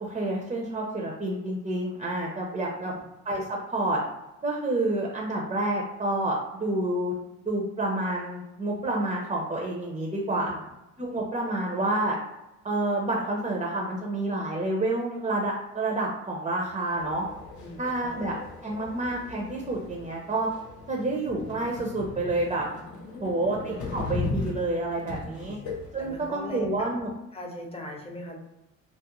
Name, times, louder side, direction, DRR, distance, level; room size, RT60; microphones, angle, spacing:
voice 1, 0.0-2.9 3.2-4.0 4.4-7.1 7.5-10.6 11.0-12.2 12.6-17.3 17.8-18.3 18.6-20.5 20.9-22.6 23.2-25.6 25.9-27.1, right 2 dB, 25° right, -1 dB, 0.5 m, -29 dB
voice 2, 2.7-3.0 10.3-10.6 17.6-18.3 22.8-23.5 25.1-25.7 26.0-26.9 27.3-28.4, left 1 dB, 20° left, 0 dB, 0.6 m, -41 dB
sound 1, 16.9-26.3, left 3 dB, 75° left, 0.7 m, -37 dB
2.3 x 2.0 x 2.9 m, 0.94 s
cardioid pair, 90°, 30 cm